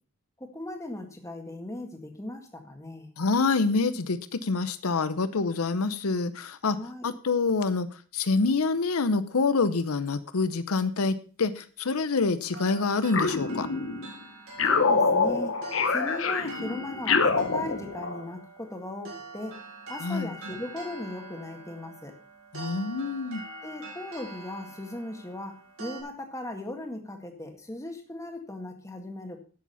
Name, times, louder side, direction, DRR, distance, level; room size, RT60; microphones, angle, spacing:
voice 1, 0.4-3.1 6.7-7.0 14.6-15.5 15.9-19.6 19.9-22.1 23.6-25.5 25.8-29.4, left 1 dB, 15° left, 4 dB, 1.8 m, -38 dB
voice 2, 3.2-6.8 7.0-13.7 20.0-20.3 22.5-23.4, left 4 dB, 85° left, 12 dB, 0.7 m, -26 dB
sound 1, 12.5-26.0, right 2 dB, 70° right, 5.0 m, -44 dB
sound 2, 13.1-14.1 14.6-18.2, left 4 dB, 65° left, 1.1 m, -26 dB
11.0 x 7.5 x 5.6 m, 0.40 s
head